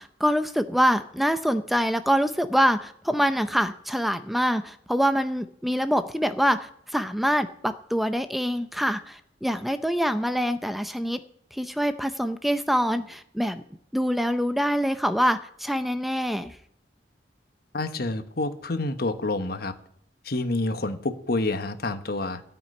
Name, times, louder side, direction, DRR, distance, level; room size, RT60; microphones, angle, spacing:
voice 1, 0.0-11.2 11.5-13.6 13.9-16.6, equal, ahead, 10 dB, 0.5 m, -25 dB
voice 2, 17.7-19.7 20.2-22.4, left 2 dB, 60° left, 9 dB, 1.2 m, -28 dB
13.5 x 5.9 x 9.8 m, 0.71 s
head